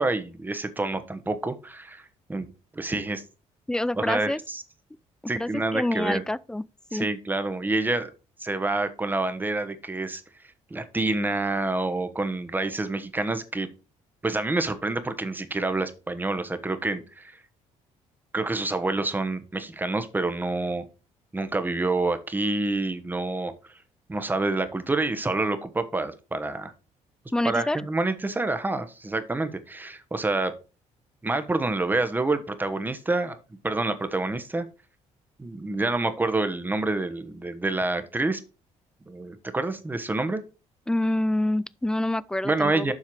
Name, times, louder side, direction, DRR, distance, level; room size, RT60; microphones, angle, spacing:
voice 1, 0.0-2.5 2.7-3.2 4.0-4.6 5.3-6.2 6.9-8.1 8.4-10.2 10.7-13.7 14.2-17.4 18.3-20.8 21.3-23.5 24.1-26.7 27.4-30.5 31.2-33.4 33.6-34.7 35.4-38.4 39.1-40.4 42.4-42.9, right 2 dB, 15° right, 1.0 m, -27 dB
voice 2, 3.7-4.4 5.4-6.6 6.9-7.1 27.3-27.8 40.9-42.9, left 1 dB, 5° left, 0.3 m, -27 dB
7.4 x 5.7 x 4.6 m
cardioid pair, 125°, 13 cm